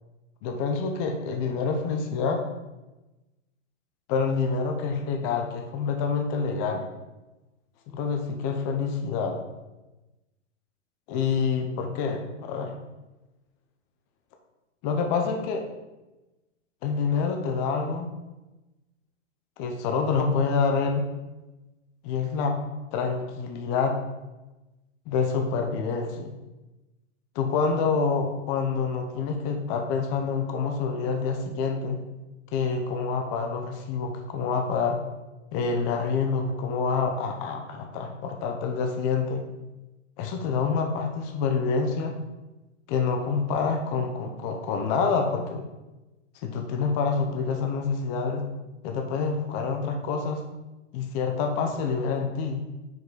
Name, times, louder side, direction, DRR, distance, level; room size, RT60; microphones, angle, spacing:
voice 1, 0.4-2.4 4.1-6.8 7.9-9.4 11.1-12.8 14.8-15.7 16.8-18.1 19.6-21.1 22.0-22.6 22.9-24.0 25.1-26.3 27.3-32.0 32.5-35.0 35.5-39.4 40.2-42.2 42.9-45.6 46.4-48.4 48.8-50.4 50.9-52.6, left 5 dB, 30° left, 4 dB, 0.7 m, -27 dB
5.9 x 5.0 x 3.8 m, 1.1 s
hypercardioid pair, 140°, 37 cm